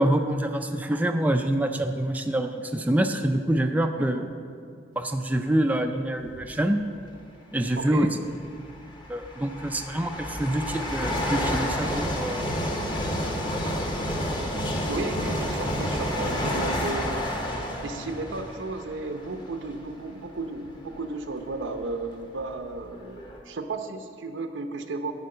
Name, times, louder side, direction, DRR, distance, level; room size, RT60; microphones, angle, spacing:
voice 1, 0.0-4.2 5.0-6.9 7.5-8.1 9.1-12.5, right 1 dB, 10° right, 5 dB, 0.3 m, -26 dB
voice 2, 4.0-4.3 7.8-8.1 14.9-17.3 17.8-25.1, right 3 dB, 85° right, 6 dB, 0.8 m, -34 dB
sound 1, 6.3-6.6 7.7-7.8 8.5-19.9 20.5-20.7 21.5-21.6 21.8-23.4, equal, 25° left, 1.0 m, -30 dB
11.0 x 4.6 x 7.7 m, 2.3 s
head